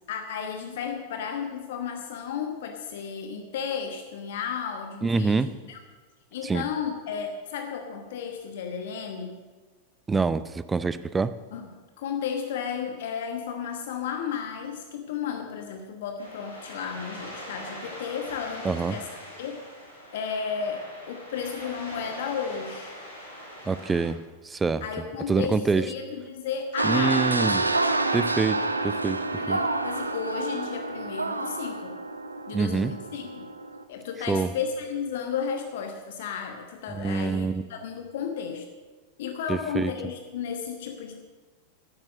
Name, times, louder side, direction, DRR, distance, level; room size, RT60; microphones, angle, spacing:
voice 1, 0.1-5.8 6.3-9.4 11.5-11.7 12.0-19.1 19.4-19.6 20.1-22.9 24.8-27.2 29.4-32.0 32.5-33.5 33.9-38.7 39.2-41.1, left 7 dB, 55° left, 5 dB, 1.2 m, -33 dB
voice 2, 5.0-5.5 6.4-6.6 10.1-11.3 18.6-19.0 23.7-24.2 24.4-24.8 25.3-25.8 26.8-27.6 28.1-29.6 32.5-32.9 34.3-34.5 36.9-37.6 39.5-39.9, right 4 dB, 15° right, 15 dB, 0.5 m, -26 dB
sound 1, 16.2-24.1, equal, 85° left, 5.0 m, -42 dB
sound 2, 26.8-33.8, right 2 dB, 80° right, 0.7 m, -28 dB
11.5 x 9.0 x 7.4 m, 1.3 s
figure-of-eight pair, 90°, 0 cm